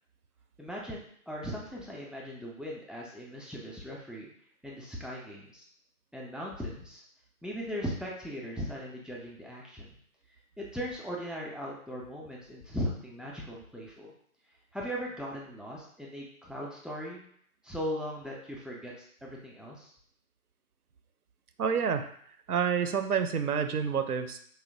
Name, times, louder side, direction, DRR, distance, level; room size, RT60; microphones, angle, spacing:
voice 1, 0.6-4.3 4.6-5.7 6.1-7.0 7.4-10.0 10.6-14.1 14.7-17.2 17.6-19.9, equal, ahead, -4 dB, 0.3 m, -38 dB
voice 2, 21.6-22.1 22.5-24.4, right 7 dB, 90° right, 8 dB, 0.5 m, -28 dB
4.2 x 2.0 x 2.6 m, 0.63 s
figure-of-eight pair, 160°, 44 cm